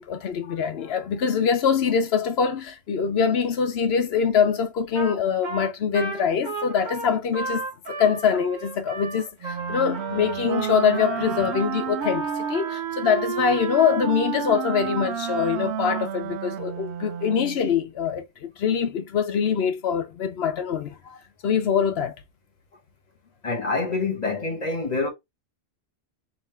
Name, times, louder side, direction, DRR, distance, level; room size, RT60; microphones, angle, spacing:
voice 1, 0.0-7.7 8.0-22.1, left 7 dB, 70° left, 0.9 m, -24 dB
Trumpet, 4.9-5.2 5.4-12.8, right 3 dB, 45° right, 1.3 m, -34 dB
Wind instrument woodwind instrument, 9.4-17.6, right 8 dB, 80° right, 0.9 m, -30 dB
voice 2, 23.4-25.1, left 3 dB, 40° left, 1.1 m, -26 dB
3.3 x 2.9 x 4.2 m
omnidirectional pair, 1.1 m